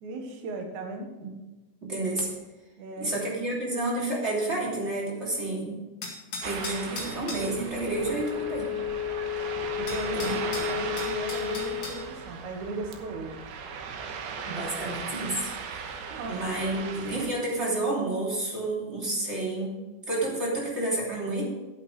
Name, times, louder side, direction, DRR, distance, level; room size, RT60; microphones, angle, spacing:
voice 1, 0.0-1.1 2.8-3.1 9.8-13.3 16.1-16.4, right 3 dB, 60° right, 3 dB, 2.6 m, -37 dB
voice 2, 1.8-2.3 3.0-5.8 6.4-8.8 10.1-10.4 14.5-16.0 16.3-19.8 20.1-21.5, right 2 dB, 20° right, -4 dB, 2.8 m, -30 dB
sound 1, 6.0-7.5 9.4-9.5 9.9-12.0, left 3 dB, 45° left, 2.6 m, -38 dB
Ocean, 6.4-17.3, right 6 dB, 85° right, 3.0 m, -37 dB
Wind instrument woodwind instrument, 7.8-12.0, left 10 dB, 85° left, 3.2 m, -32 dB
12.0 x 8.5 x 4.8 m, 1.1 s
omnidirectional pair, 4.4 m